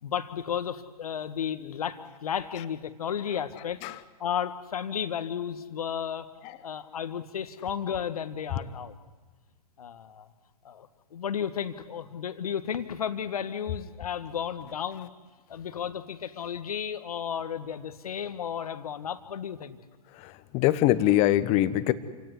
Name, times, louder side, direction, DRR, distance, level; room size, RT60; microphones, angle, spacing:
voice 1, 0.0-3.8 4.2-6.3 6.6-8.9 9.8-10.3 10.6-15.1 15.5-19.8, left 8 dB, 65° left, 11 dB, 1.7 m, -33 dB
voice 2, 20.2-21.9, left 14 dB, 30° left, 14 dB, 1.3 m, -23 dB
28.5 x 17.0 x 10.0 m, 1.3 s
figure-of-eight pair, 120°, 20 cm